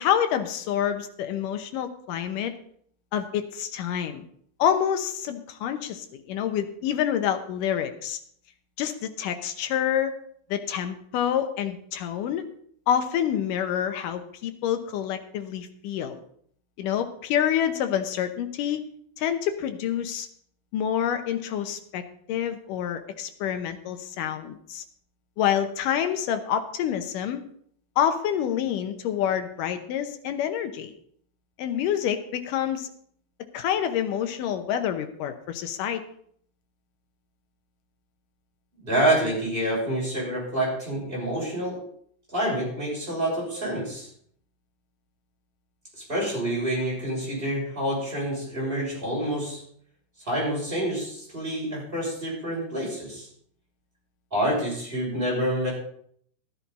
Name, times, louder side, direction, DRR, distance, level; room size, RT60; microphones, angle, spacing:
voice 1, 0.0-2.5 3.1-4.2 4.6-8.2 8.8-10.1 10.5-12.4 12.9-16.2 16.8-18.8 19.2-20.3 20.7-22.0 22.3-24.8 25.4-27.4 28.0-30.9 31.6-32.9 33.5-36.0, left 9 dB, 75° left, 8 dB, 2.5 m, -27 dB
voice 2, 38.8-41.8 42.3-44.1 46.0-49.6 50.2-53.3 54.3-55.7, right 1 dB, 15° right, -5 dB, 6.5 m, -27 dB
13.0 x 10.5 x 4.1 m, 0.63 s
omnidirectional pair, 3.9 m